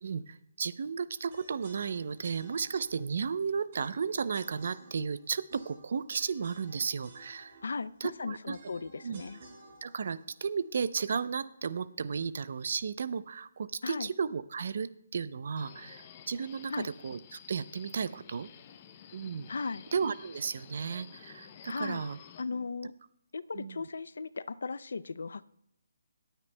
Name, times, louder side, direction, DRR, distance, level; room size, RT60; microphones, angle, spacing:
voice 1, 0.0-7.6 8.0-8.6 9.0-9.2 9.8-18.5 19.1-19.5 19.9-22.2 23.5-23.8, right 6 dB, 60° right, 15 dB, 0.5 m, -34 dB
sound 1, 1.3-11.4, right 2 dB, 40° right, 4.0 m, -56 dB
voice 2, 7.6-9.4 13.8-14.1 16.7-16.9 19.5-19.9 21.6-22.0 22.4-22.9 23.3-25.5, left 4 dB, 75° left, 17 dB, 0.5 m, -37 dB
Subway metro underground, 15.6-22.4, left 9 dB, 30° left, 0.6 m, -52 dB
19.0 x 9.0 x 2.2 m, 0.73 s
hypercardioid pair, 165°, 0 cm